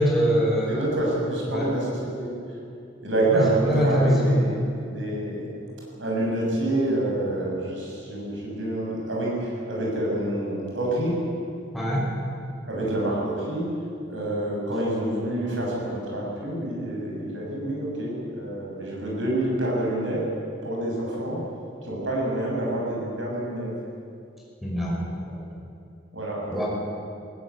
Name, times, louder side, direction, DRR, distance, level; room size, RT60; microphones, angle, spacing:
voice 1, 0.0-0.8 1.5-1.7 3.3-4.4 11.7-12.1 24.6-25.4 26.5-26.7, equal, ahead, -4 dB, 5.5 m, -23 dB
voice 2, 0.7-2.3 3.0-5.6 6.0-11.2 12.7-13.7 14.1-20.3 20.6-21.4 21.8-23.7 26.1-26.7, right 1 dB, 85° right, -3 dB, 7.3 m, -27 dB
20.0 x 18.0 x 8.6 m, 2.5 s
head